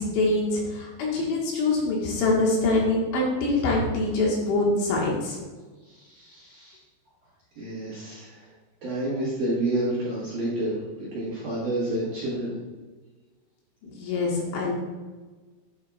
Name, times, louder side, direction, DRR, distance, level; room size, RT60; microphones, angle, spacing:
voice 1, 0.0-5.4 13.8-14.7, left 2 dB, 75° left, -3 dB, 3.6 m, -24 dB
voice 2, 5.9-6.8 7.6-8.4 8.8-10.7 11.0-12.5, right 1 dB, 60° right, -8 dB, 2.3 m, -29 dB
9.6 x 7.5 x 2.3 m, 1.3 s
omnidirectional pair, 5.7 m